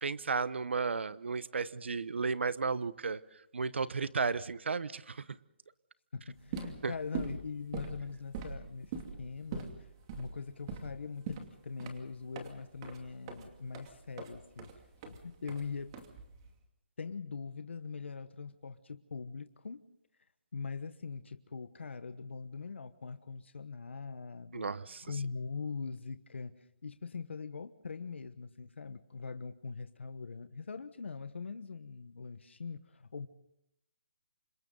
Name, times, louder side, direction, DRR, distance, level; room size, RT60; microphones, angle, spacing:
voice 1, 0.0-3.2 3.5-5.2 6.8-6.9 24.5-25.0, right 4 dB, 85° right, 17 dB, 1.0 m, -33 dB
voice 2, 6.1-8.9 9.2-9.9 10.2-14.7 15.0-15.9 17.0-19.8 20.5-24.7 25.0-33.3, left 5 dB, 90° left, 10 dB, 1.2 m, -42 dB
sound 1, 6.3-16.5, right 5 dB, 25° right, 2.6 m, -43 dB
29.5 x 26.5 x 3.9 m, 0.82 s
hypercardioid pair, 165°, 6 cm